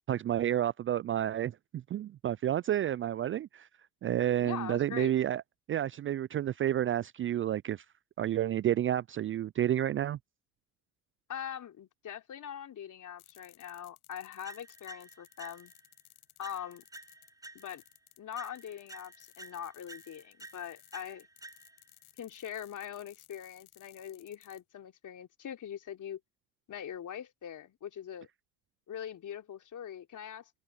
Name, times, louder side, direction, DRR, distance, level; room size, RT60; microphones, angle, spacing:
voice 1, 0.0-3.7 4.0-5.4 5.7-7.8 8.2-10.2, right 11 dB, 30° right, 0.5 m, -30 dB
voice 2, 4.4-5.1 11.3-15.7 16.4-16.8 17.5-17.8 18.2-21.3 22.2-26.2 26.7-28.3 28.9-30.5, left 9 dB, 45° left, 3.8 m, -42 dB
sound 1, 13.2-24.6, left 18 dB, 65° left, 5.7 m, -60 dB
sound 2, 14.4-15.9 16.4-18.0 18.4-22.0, right 2 dB, 10° right, 5.5 m, -52 dB
hypercardioid pair, 60°, 41 cm